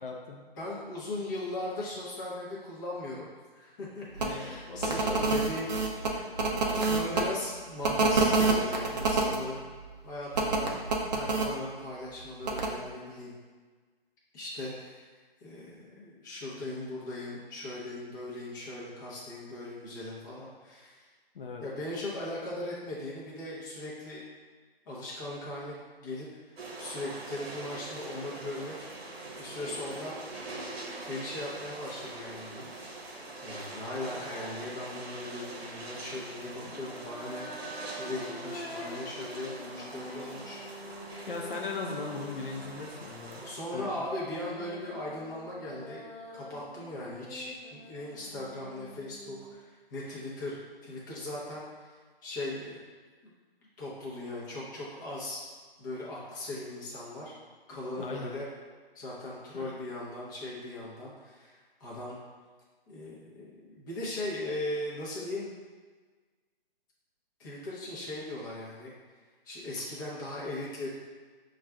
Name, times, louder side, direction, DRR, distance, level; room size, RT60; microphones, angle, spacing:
voice 1, 0.0-0.5 4.2-5.5 21.3-21.6 41.3-43.4 43.7-44.1 58.0-58.3 59.5-59.7, left 4 dB, 60° left, 0 dB, 0.5 m, -39 dB
voice 2, 0.6-6.3 6.6-9.6 10.0-10.8 11.0-13.3 14.3-15.1 15.4-21.1 21.6-24.2 24.9-26.3 26.8-30.2 31.1-33.0 33.4-41.2 43.4-46.0 46.3-50.6 50.8-52.8 53.2-53.3 53.8-55.4 55.8-57.3 57.7-58.5 58.9-62.1 62.9-65.5 67.4-68.9 69.4-70.9, left 1 dB, 20° left, -6 dB, 0.7 m, -39 dB
sound 1, 4.2-4.3 4.8-7.2 7.8-9.4 10.3-11.5 12.4-12.7, right 3 dB, 45° right, 0.5 m, -26 dB
sound 2, 26.6-43.6, right 2 dB, 80° right, 0.8 m, -43 dB
sound 3, 34.7-35.0 36.4-43.0 43.9-49.5, equal, 75° left, 0.9 m, -46 dB
5.9 x 2.4 x 2.2 m, 1.4 s
figure-of-eight pair, 150°, 30 cm